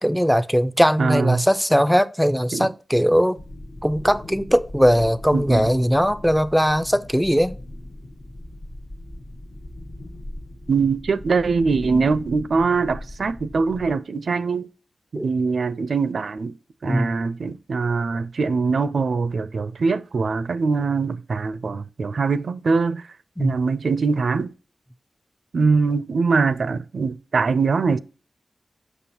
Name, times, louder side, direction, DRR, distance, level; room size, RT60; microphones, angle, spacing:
voice 1, 0.0-3.4 3.8-7.6 15.1-15.3 16.8-17.1 23.4-23.5, equal, ahead, 0.4 m, -19 dB
voice 2, 1.0-1.4 2.5-2.7 5.3-5.7 10.7-14.7 15.1-16.6 16.8-23.0 23.4-24.5 25.5-28.0, right 4 dB, 70° right, 0.4 m, -22 dB
sound 1, 3.3-13.9, left 1 dB, 50° left, 1.0 m, -39 dB
7.0 x 6.4 x 2.8 m
wide cardioid pair, 120°, 0 cm